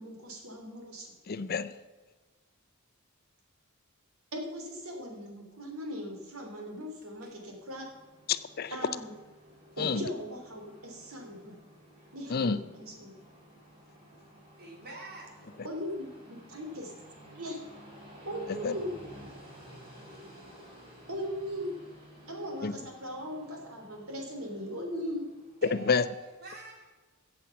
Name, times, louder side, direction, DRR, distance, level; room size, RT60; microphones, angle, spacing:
voice 1, 0.0-1.1 4.3-7.9 8.7-9.1 9.8-11.6 12.1-13.2 15.6-16.9 17.3-17.6 18.2-18.9 21.1-21.8 22.3-25.3, equal, 80° right, 2 dB, 3.3 m, -39 dB
voice 2, 1.3-1.8 8.3-8.7 9.8-10.0 12.3-12.6 18.6-18.7 22.6-22.8 25.7-26.0, left 5 dB, 45° left, 13 dB, 0.6 m, -28 dB
Train, 7.3-25.8, equal, 25° right, 4.7 m, -53 dB
voice 3, 14.6-15.3 25.6-26.9, right 2 dB, 50° right, 0 dB, 3.3 m, -46 dB
15.5 x 7.7 x 5.8 m, 1.3 s
head